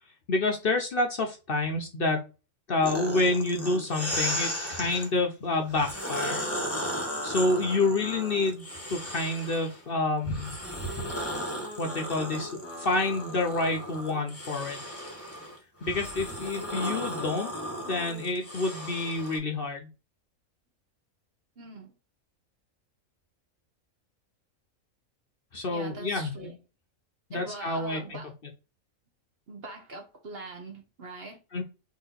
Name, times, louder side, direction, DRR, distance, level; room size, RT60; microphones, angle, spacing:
voice 1, 0.3-2.3 2.7-6.4 7.2-10.5 11.8-14.8 15.8-17.5 17.9-19.9 25.5-26.6 27.3-28.2 31.5-31.6, left 2 dB, 50° left, 0.9 m, -28 dB
sound 1, 2.8-5.1 5.7-9.8 10.2-19.4, equal, 10° left, 1.0 m, -35 dB
voice 2, 21.6-21.9 25.7-26.5 27.3-28.3 29.5-31.4, right 3 dB, 50° right, 1.1 m, -42 dB
4.0 x 3.2 x 3.9 m
omnidirectional pair, 1.4 m